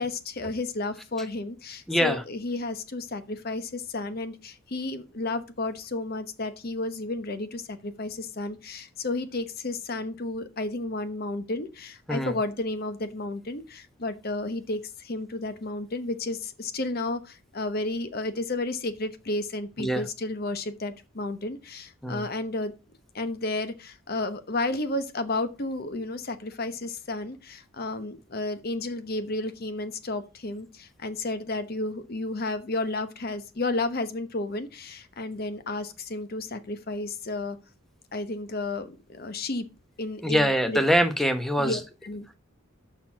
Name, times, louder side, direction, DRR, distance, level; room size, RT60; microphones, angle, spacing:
voice 1, 0.0-22.7 23.1-37.6 38.1-39.6 40.0-40.8 41.6-42.3, left 2 dB, 45° left, 1.0 m, -32 dB
voice 2, 1.9-2.2 12.1-12.4 19.8-20.1 22.0-22.3 40.2-41.8, equal, ahead, 1.0 m, -24 dB
6.8 x 5.9 x 6.1 m
head